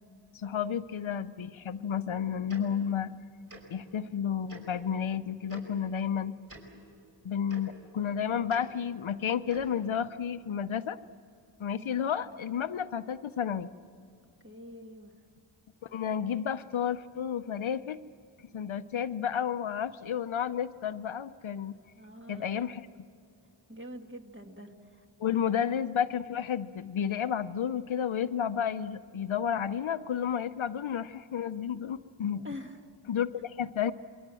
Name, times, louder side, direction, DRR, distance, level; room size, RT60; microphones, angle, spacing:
voice 1, 0.3-3.1 3.7-6.4 7.2-11.0 11.6-13.7 15.8-18.0 18.5-21.8 22.3-22.9 25.2-32.5 33.1-33.9, left 8 dB, 70° left, 11 dB, 0.8 m, -31 dB
Tick-tock, 2.5-2.6 3.5-3.6 4.5-4.6 5.5-5.6 6.5-6.6 7.5-7.6 8.5-8.6 9.5-9.7, right 2 dB, 40° right, 5.5 m, -47 dB
voice 2, 14.4-15.1 22.0-22.5 23.7-25.0 32.4-32.8, left 1 dB, 25° right, 3 dB, 1.9 m, -45 dB
28.0 x 23.0 x 7.7 m, 2.4 s
wide cardioid pair, 95°, 49 cm